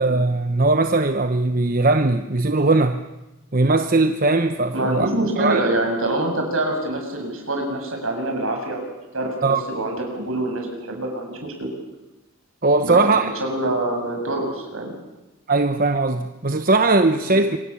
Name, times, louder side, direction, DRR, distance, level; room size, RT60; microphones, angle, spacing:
voice 1, 0.0-3.0 3.5-5.1 5.4-5.7 9.4-9.6 12.6-13.3 15.5-17.6, right 3 dB, 40° right, 1.0 m, -19 dB
voice 2, 4.7-8.9 9.1-11.7 12.8-14.9 17.2-17.4, right 1 dB, 65° right, 7.3 m, -25 dB
27.0 x 24.5 x 7.2 m
head